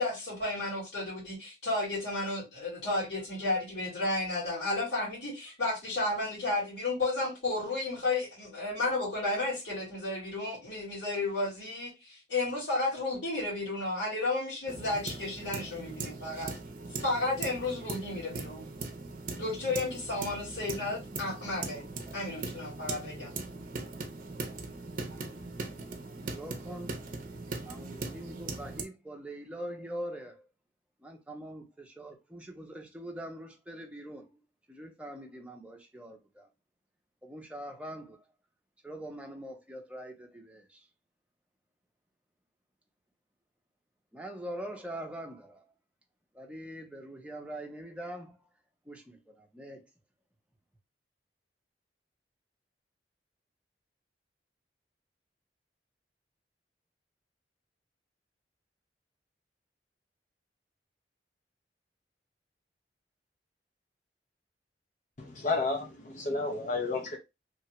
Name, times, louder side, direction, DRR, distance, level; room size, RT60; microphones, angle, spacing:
voice 1, 0.0-16.5 17.0-18.6 19.4-21.8 22.1-23.3, left 2 dB, 75° left, 1.9 m, -32 dB
sound 1, 14.7-28.8, right 3 dB, 50° right, 0.6 m, -40 dB
voice 2, 26.2-27.0 27.6-30.3 31.0-34.3 34.7-36.5 37.2-38.2 38.8-40.8 44.1-45.6 46.3-48.4 48.9-49.9, right 1 dB, 5° right, 0.7 m, -43 dB
voice 3, 65.2-67.2, left 3 dB, 45° left, 0.6 m, -31 dB
3.1 x 2.3 x 2.9 m
head